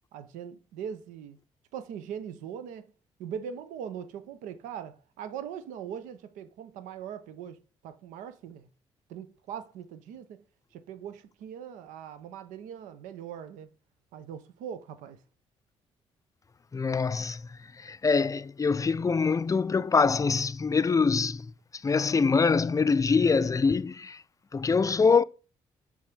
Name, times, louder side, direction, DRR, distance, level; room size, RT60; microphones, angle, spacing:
voice 1, 0.1-1.4 1.7-2.9 3.2-8.7 9.1-10.4 10.7-13.7 14.1-15.2, right 8 dB, 80° right, 0.7 m, -41 dB
voice 2, 16.7-17.4 17.8-21.5 21.8-24.2 24.5-25.2, left 5 dB, 25° left, 0.4 m, -24 dB
6.5 x 3.5 x 5.3 m
hypercardioid pair, 50°, 13 cm